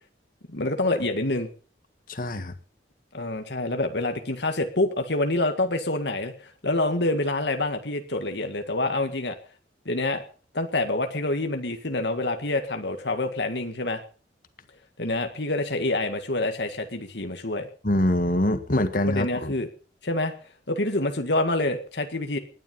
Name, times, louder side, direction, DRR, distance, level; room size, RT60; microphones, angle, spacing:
voice 1, 0.5-1.5 3.1-9.4 9.9-10.2 10.5-14.0 15.0-17.7 19.1-19.7 20.0-20.3 20.7-22.4, left 2 dB, 70° left, 6 dB, 1.9 m, -27 dB
voice 2, 2.1-2.5 17.8-19.5, left 1 dB, 50° left, 9 dB, 1.8 m, -24 dB
19.5 x 11.0 x 5.5 m, 0.39 s
head